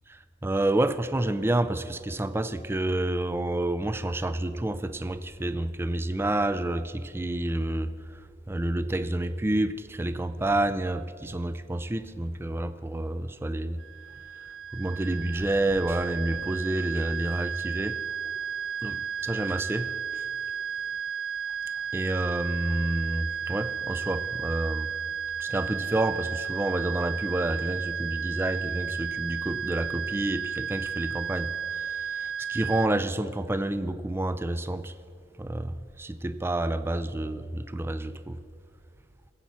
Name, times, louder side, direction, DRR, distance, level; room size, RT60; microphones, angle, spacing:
voice 1, 0.4-13.8 14.7-18.0 18.8-20.3 21.9-24.9 25.4-35.0 35.4-38.4, right 1 dB, 15° right, 0.4 m, -29 dB
sound 1, 13.8-32.9, right 7 dB, 80° right, 0.5 m, -33 dB
20.5 x 8.3 x 4.2 m
head